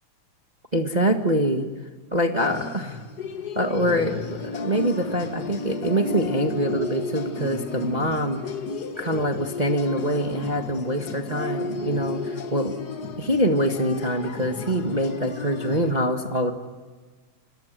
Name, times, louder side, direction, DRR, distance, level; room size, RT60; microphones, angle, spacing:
voice 1, 0.7-1.7 2.1-3.0 3.5-8.4 9.0-12.7 13.2-16.5, equal, 25° right, 5 dB, 1.0 m, -24 dB
sound 1, 2.4-15.9, left 3 dB, 40° left, 1.7 m, -33 dB
29.0 x 22.0 x 7.7 m, 1.3 s
omnidirectional pair, 3.5 m